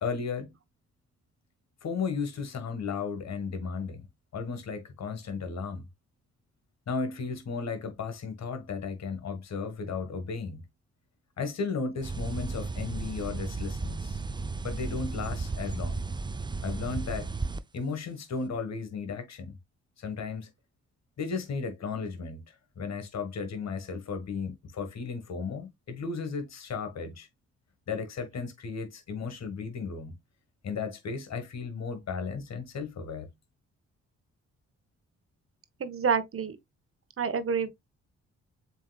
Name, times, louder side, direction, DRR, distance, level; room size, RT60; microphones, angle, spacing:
voice 1, 0.0-0.5 1.8-4.1 4.3-5.8 6.9-10.6 11.4-14.2 14.6-16.0 16.6-17.3 17.7-19.5 20.0-20.5 21.2-27.3 27.9-30.2 30.6-33.3, left 5 dB, 50° left, 1.5 m, -35 dB
sound 1, 12.0-17.6, right 3 dB, 15° right, 0.5 m, -34 dB
voice 2, 35.8-36.6 37.2-37.7, right 6 dB, 40° right, 1.0 m, -28 dB
7.3 x 2.9 x 2.3 m
hypercardioid pair, 40°, 34 cm